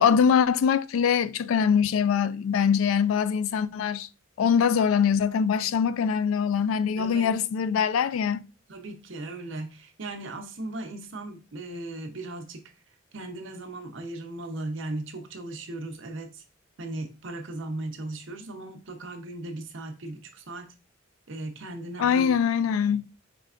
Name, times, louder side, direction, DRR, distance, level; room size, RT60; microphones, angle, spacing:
voice 1, 0.0-4.1 4.4-8.4 22.0-23.1, left 7 dB, 90° left, 0.3 m, -23 dB
voice 2, 7.0-7.4 8.7-12.6 13.1-16.4 16.8-20.7 21.3-22.3, right 2 dB, 70° right, 0.7 m, -37 dB
5.2 x 3.2 x 2.4 m
head